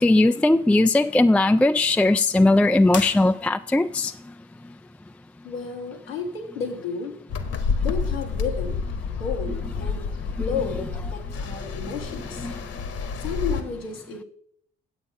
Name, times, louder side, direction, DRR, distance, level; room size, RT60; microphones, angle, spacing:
voice 1, 0.0-4.1 12.4-12.5, left 2 dB, 5° left, 10 dB, 0.4 m, -19 dB
sound 1, 2.9-3.9, left 6 dB, 40° left, 1.1 m, -36 dB
voice 2, 5.4-7.2 7.8-8.9 9.2-10.1 10.4-12.5 13.2-14.2, left 5 dB, 85° left, 1 dB, 1.5 m, -32 dB
sound 2, 7.3-13.6, left 5 dB, 55° left, 1.4 m, -29 dB
8.8 x 8.0 x 5.5 m, 0.65 s
figure-of-eight pair, 40°, 29 cm